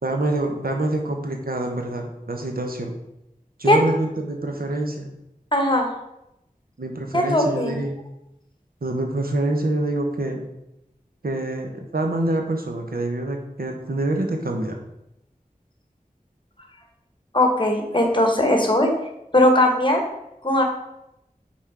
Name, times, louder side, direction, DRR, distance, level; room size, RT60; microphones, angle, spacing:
voice 1, 0.0-2.9 3.6-5.1 6.8-8.0 8.8-10.4 11.2-14.8, right 2 dB, 85° right, 3 dB, 0.9 m, -26 dB
voice 2, 5.5-5.9 7.1-7.8 17.3-18.9 19.3-20.0 20.4-20.6, left 1 dB, 35° left, 3 dB, 1.3 m, -19 dB
5.9 x 4.2 x 4.8 m, 0.86 s
wide cardioid pair, 40°, 15 cm